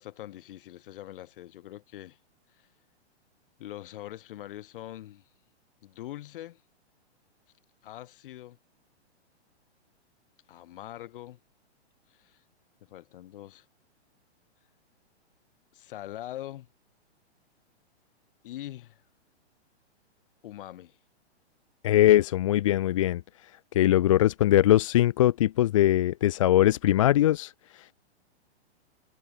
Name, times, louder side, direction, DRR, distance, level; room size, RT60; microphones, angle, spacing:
voice 1, 0.0-2.2 2.5-2.7 3.6-5.2 5.8-6.6 7.8-8.6 10.5-11.4 12.1-12.4 12.8-13.6 15.7-16.7 18.4-19.0 20.4-21.0, left 14 dB, 50° left, 2.9 m, -43 dB
voice 2, 21.8-23.2 23.7-27.9, left 13 dB, 30° left, 0.4 m, -21 dB
hypercardioid pair, 155°, 34 cm